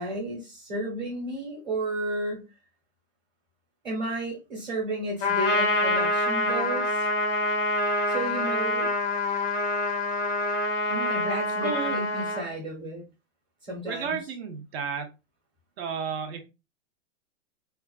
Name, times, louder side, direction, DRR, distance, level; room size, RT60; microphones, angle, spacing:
voice 1, 0.0-2.5 3.8-7.1 8.1-8.9 11.1-13.0 13.6-14.2, right 1 dB, 20° right, -3 dB, 0.9 m, -32 dB
Trumpet, 5.2-12.4, left 2 dB, 25° left, 0.5 m, -26 dB
voice 2, 11.6-12.0 13.8-15.1 15.8-16.4, right 6 dB, 55° right, 6 dB, 0.7 m, -32 dB
2.4 x 2.3 x 2.3 m, 0.27 s
hypercardioid pair, 150°, 39 cm